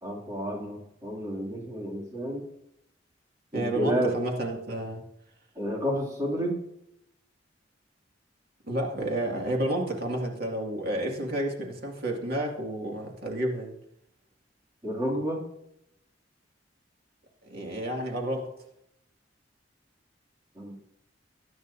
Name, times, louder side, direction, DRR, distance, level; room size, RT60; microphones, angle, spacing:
voice 1, 0.0-2.4 3.5-4.2 5.6-6.6 14.8-15.5 20.6-20.8, equal, 20° right, -2 dB, 2.7 m, -30 dB
voice 2, 3.5-5.0 8.7-13.7 17.5-18.5, right 1 dB, 55° right, 0 dB, 2.3 m, -30 dB
21.0 x 9.4 x 2.7 m, 0.80 s
head